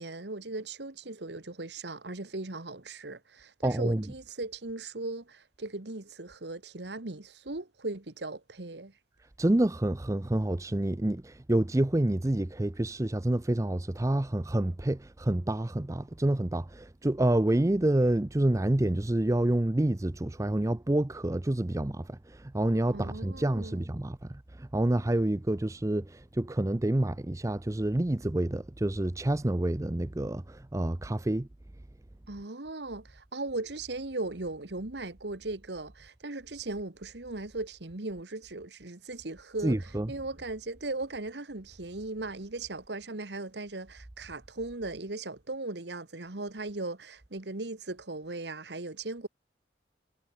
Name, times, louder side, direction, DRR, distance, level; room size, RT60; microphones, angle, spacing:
voice 1, 0.0-8.9 22.9-23.8 32.3-49.3, right 2 dB, 70° right, 1.6 m, -38 dB
voice 2, 3.6-4.0 9.4-31.5 39.6-40.1, right 1 dB, 20° right, 0.5 m, -28 dB
head